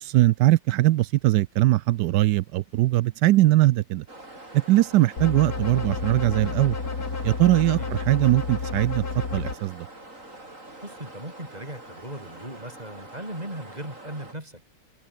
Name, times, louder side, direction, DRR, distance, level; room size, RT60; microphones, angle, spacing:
voice 1, 0.0-4.0 4.5-6.8 7.2-9.0 9.3-9.9, right 16 dB, 80° right, 0.9 m, -21 dB
sound 1, 4.1-14.3, right 2 dB, 35° right, 7.4 m, -45 dB
sound 2, 5.2-9.6, left 4 dB, 45° left, 3.4 m, -31 dB
voice 2, 10.8-14.6, right 1 dB, 15° right, 6.4 m, -38 dB
omnidirectional pair, 2.3 m